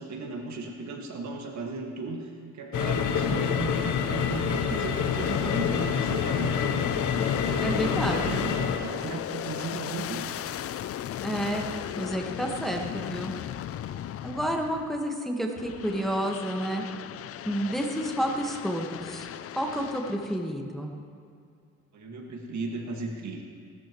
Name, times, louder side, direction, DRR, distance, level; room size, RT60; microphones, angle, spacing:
voice 1, 0.0-6.7 7.2-10.3 21.9-23.4, right 4 dB, 65° right, 1 dB, 1.9 m, -36 dB
sound 1, 2.7-8.8, left 7 dB, 75° left, 1.0 m, -27 dB
Aircraft, 5.0-15.1 15.6-20.5, left 11 dB, 50° left, 0.5 m, -37 dB
voice 2, 7.6-8.2 11.2-11.7 12.0-13.3 14.2-16.8 17.4-19.3 19.6-20.9, equal, ahead, 0 dB, 1.5 m, -30 dB
19.0 x 13.0 x 3.1 m, 2.3 s
cardioid pair, 90°, 30 cm